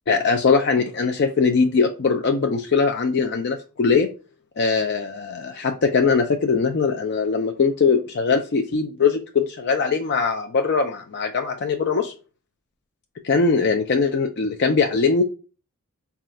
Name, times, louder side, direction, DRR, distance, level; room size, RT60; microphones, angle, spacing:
voice 1, 0.1-4.1 4.6-12.1 13.2-15.2, left 5 dB, 50° left, 0.4 m, -21 dB
4.2 x 2.4 x 3.6 m
head